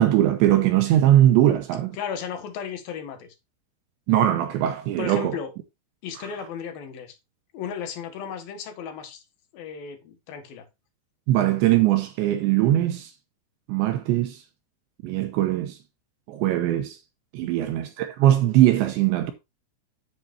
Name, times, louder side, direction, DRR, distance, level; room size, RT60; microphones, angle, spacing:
voice 1, 0.0-1.9 4.1-5.4 11.3-13.1 13.7-14.4 15.0-15.8 16.3-17.0 17.3-19.3, right 13 dB, 80° right, 3.0 m, -20 dB
voice 2, 1.9-3.3 5.0-5.5 6.0-7.2 7.5-9.2 9.5-10.7 17.4-17.7, left 7 dB, 60° left, 3.0 m, -35 dB
9.9 x 9.1 x 2.7 m
omnidirectional pair, 5.5 m